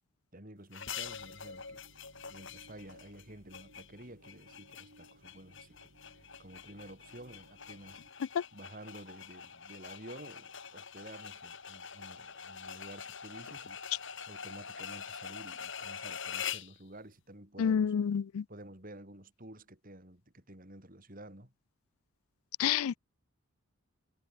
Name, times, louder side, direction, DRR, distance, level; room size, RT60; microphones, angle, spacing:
voice 1, 0.3-1.8 2.3-5.9 6.4-8.0 8.5-13.8 14.3-17.9 18.5-21.5, right 1 dB, 40° right, 3.7 m, -51 dB
sound 1, 0.7-16.8, left 7 dB, 55° left, 3.8 m, -45 dB
sound 2, 1.0-8.1, right 1 dB, 85° right, 6.7 m, -62 dB
voice 2, 17.6-18.4 22.6-23.0, left 8 dB, 75° left, 0.4 m, -28 dB
head